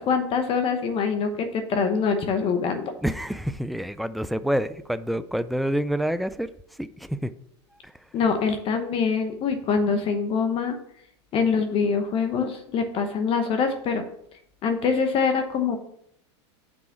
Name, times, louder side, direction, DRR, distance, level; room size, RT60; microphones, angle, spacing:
voice 1, 0.0-2.8 8.1-10.8 11.3-14.0 14.6-15.8, left 5 dB, 35° left, 1.0 m, -24 dB
voice 2, 3.0-6.5 6.8-7.3 7.8-7.9, equal, ahead, 0.4 m, -27 dB
6.3 x 4.8 x 5.8 m
hypercardioid pair, 110°, 15 cm